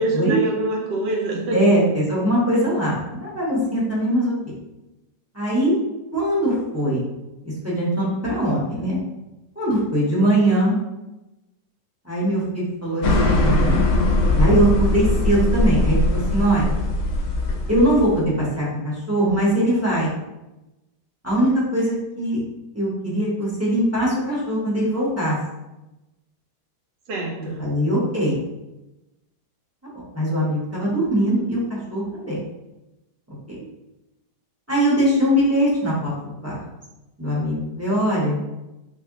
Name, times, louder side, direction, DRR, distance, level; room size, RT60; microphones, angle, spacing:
voice 1, 0.0-1.7 27.1-27.7, right 2 dB, 85° right, -1 dB, 1.5 m, -25 dB
voice 2, 1.5-4.5 5.3-5.8 6.1-7.0 7.4-9.0 9.6-10.7 12.0-13.8 14.3-16.7 17.7-20.1 21.2-22.4 22.7-25.4 27.4-28.4 30.1-32.4 33.5-33.6 34.7-36.6 37.2-38.4, right 1 dB, 10° right, -7 dB, 0.7 m, -21 dB
sound 1, 13.0-18.2, left 2 dB, 70° left, 1.0 m, -20 dB
3.4 x 2.5 x 3.6 m, 0.99 s
omnidirectional pair, 1.9 m